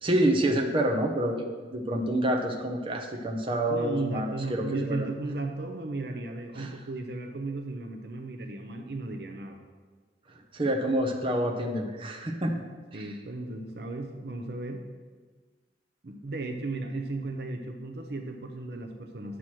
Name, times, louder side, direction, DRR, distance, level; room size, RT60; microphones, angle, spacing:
voice 1, 0.0-1.4 1.7-5.1 6.5-6.7 10.5-12.5 12.9-13.1, right 1 dB, 30° right, 2 dB, 0.8 m, -27 dB
voice 2, 3.7-9.6 12.9-14.8 16.0-19.4, right 2 dB, 60° right, 4 dB, 0.7 m, -35 dB
9.3 x 6.2 x 4.4 m, 1.4 s
head